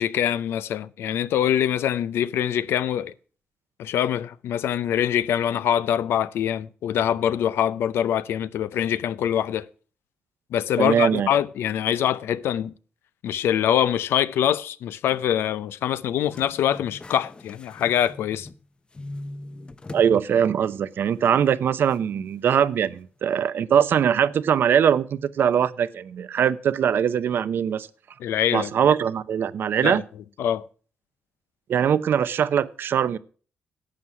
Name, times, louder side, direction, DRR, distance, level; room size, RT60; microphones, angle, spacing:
voice 1, 0.0-3.1 3.8-9.7 10.5-12.7 13.2-18.5 28.2-28.7 29.8-30.0 30.4-30.7, left 10 dB, 85° left, 0.5 m, -24 dB
voice 2, 10.8-11.3 19.9-27.9 28.5-30.0 31.7-33.2, right 8 dB, 70° right, 0.6 m, -22 dB
sound 1, 16.2-18.6 18.9-20.1 20.5-20.6 21.9-22.0, left 2 dB, 25° left, 0.6 m, -40 dB
11.5 x 7.7 x 5.9 m
cardioid pair, 85°, 4 cm